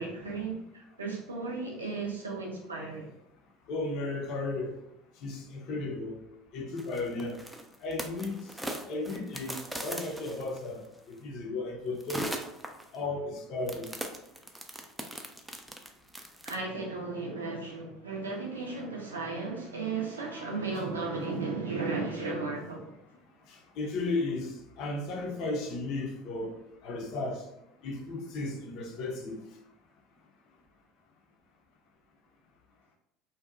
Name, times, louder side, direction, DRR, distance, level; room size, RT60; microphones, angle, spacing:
voice 1, 0.0-3.1 16.4-22.9, right 3 dB, 80° right, 0.5 m, -35 dB
voice 2, 3.7-4.7 5.2-6.2 6.5-7.4 7.8-8.3 8.9-10.8 11.1-12.2 12.9-13.9 23.8-26.5 26.8-27.4 27.8-29.4, left 2 dB, 50° left, 0.5 m, -34 dB
sound 1, 6.8-10.9 12.0-13.0 13.7-16.6, right 1 dB, 5° right, 0.4 m, -39 dB
2.6 x 2.1 x 2.4 m
figure-of-eight pair, 65°, 0 cm